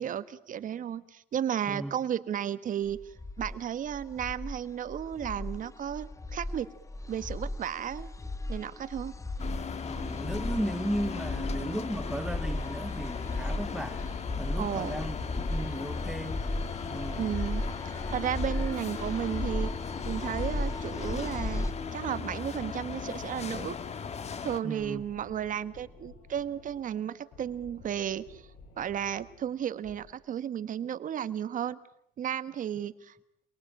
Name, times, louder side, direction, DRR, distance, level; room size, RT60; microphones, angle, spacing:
voice 1, 0.0-3.0 3.4-6.7 7.1-8.1 8.5-9.1 14.6-15.0 17.1-19.7 20.0-23.8 24.4-28.4 28.8-31.8 32.2-33.2, right 9 dB, 50° right, 1.4 m, -33 dB
sound 1, 2.9-21.7, left 2 dB, 20° left, 1.6 m, -36 dB
sound 2, 9.4-24.6, left 6 dB, 40° left, 2.0 m, -37 dB
voice 2, 9.9-14.0 14.4-15.2 15.5-16.4 16.8-17.3 24.6-25.0, right 1 dB, 5° right, 1.1 m, -35 dB
sound 3, 14.1-30.1, left 3 dB, 75° left, 7.6 m, -54 dB
28.0 x 21.5 x 8.8 m
cardioid pair, 110°, 17 cm